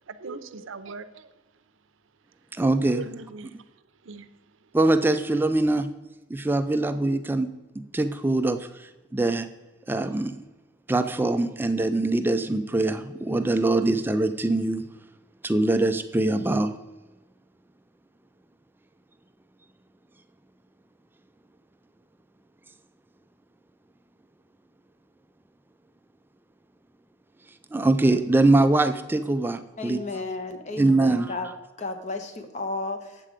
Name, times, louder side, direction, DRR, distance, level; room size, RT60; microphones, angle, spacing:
voice 1, 0.1-1.3 2.9-3.5 4.1-4.3, right 3 dB, 90° right, 12 dB, 0.6 m, -39 dB
voice 2, 2.6-3.0 4.7-5.9 6.3-7.5 7.9-8.7 9.1-9.5 9.9-10.3 10.9-14.8 15.4-16.7 27.7-30.0 30.8-31.5, right 2 dB, 10° right, 9 dB, 0.3 m, -23 dB
voice 3, 29.8-31.5 31.8-33.2, left 3 dB, 35° left, 6 dB, 1.0 m, -33 dB
8.8 x 7.5 x 5.0 m, 1.1 s
head